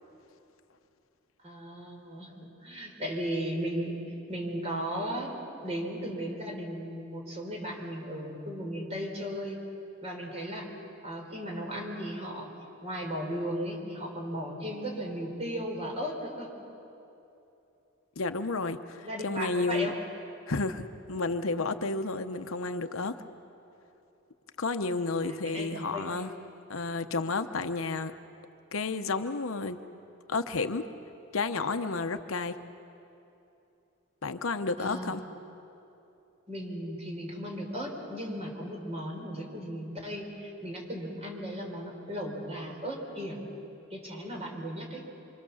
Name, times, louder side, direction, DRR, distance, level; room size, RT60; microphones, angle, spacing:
voice 1, 1.4-2.3 2.6-4.0 4.3-5.3 5.6-9.6 10.0-10.7 11.0-12.5 12.8-16.5 19.0-19.9 25.2-26.2 34.8-35.1 36.5-43.4 43.9-45.0, equal, 30° right, 4.6 m, -36 dB
voice 2, 18.2-19.9 20.5-23.1 24.6-26.3 26.7-28.1 28.7-29.8 30.3-30.8 31.3-32.6 34.2-35.2, left 3 dB, 75° left, 0.9 m, -31 dB
26.0 x 26.0 x 7.2 m
head